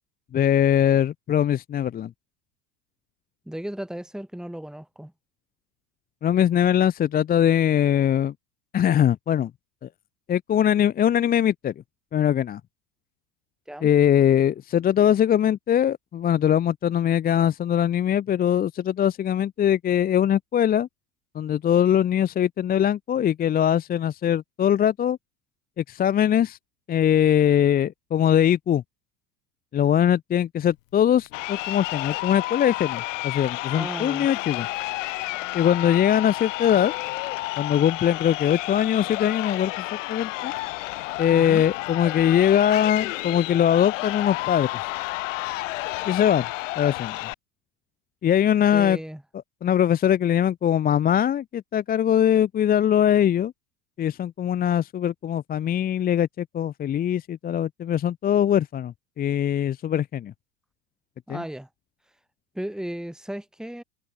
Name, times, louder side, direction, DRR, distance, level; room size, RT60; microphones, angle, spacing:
voice 1, 0.3-2.1 6.2-8.3 8.7-9.5 9.8-9.9 10.3-11.7 12.1-12.6 13.8-20.9 21.3-25.2 25.8-26.6 26.9-28.8 29.7-34.7 35.5-36.9 37.6-40.5 41.2-44.7 46.1-46.4 46.7-47.2 48.2-49.0 49.6-53.5 54.0-60.3 61.3-61.4, left 10 dB, 20° left, 0.8 m, -21 dB
voice 2, 3.5-5.1 13.7-13.9 33.7-34.3 41.3-41.7 48.7-49.2 61.3-61.7 62.5-63.8, right 1 dB, ahead, 4.9 m, -35 dB
Crowd, 31.3-47.3, left 20 dB, 50° left, 1.0 m, -31 dB
figure-of-eight pair, 80°, 48 cm